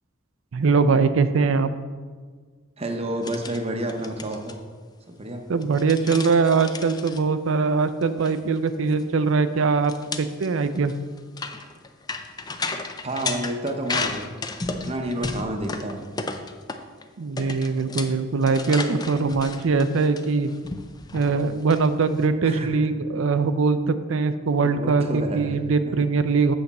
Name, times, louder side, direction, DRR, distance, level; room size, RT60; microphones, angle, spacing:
voice 1, 0.5-1.7 5.5-10.9 17.2-20.5 21.1-26.5, right 4 dB, 65° right, 11 dB, 0.5 m, -22 dB
voice 2, 2.8-4.6 5.1-5.4 13.0-14.3 14.7-16.0 22.4-22.9 24.6-25.5 25.9-26.0, right 1 dB, 30° right, 4 dB, 0.8 m, -30 dB
sound 1, 3.2-3.6 3.9-4.5 5.6-7.2 8.0-8.3 8.6-8.7 9.0-9.1 9.8-17.0 17.4-22.2, left 3 dB, 20° left, 0.4 m, -33 dB
8.2 x 6.5 x 4.2 m, 1.5 s
head